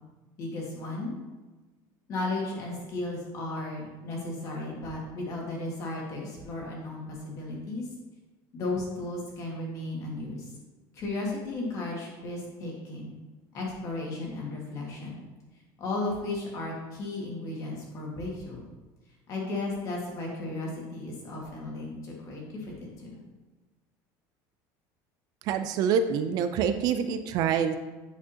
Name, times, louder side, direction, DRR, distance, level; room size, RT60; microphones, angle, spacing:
voice 1, 0.4-1.1 2.1-7.9 8.5-10.5 10.9-13.1 13.5-15.2 15.8-18.6 19.3-23.2, left 2 dB, 40° left, -2 dB, 1.9 m, -35 dB
voice 2, 25.4-27.8, right 7 dB, 45° right, 9 dB, 0.4 m, -26 dB
8.5 x 6.2 x 2.8 m, 1.2 s
cardioid pair, 170°, 9 cm